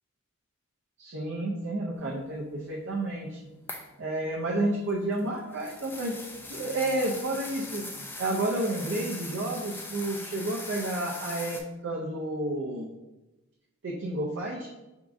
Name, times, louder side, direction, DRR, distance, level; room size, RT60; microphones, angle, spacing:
voice 1, 1.0-3.4 4.0-6.1 6.5-7.9 8.2-12.9 13.8-14.7, right 1 dB, 55° right, -3 dB, 0.5 m, -31 dB
sound 1, 3.7-4.0 4.9-11.6, left 2 dB, 10° left, 0.3 m, -40 dB
5.0 x 3.6 x 2.5 m, 1.0 s
head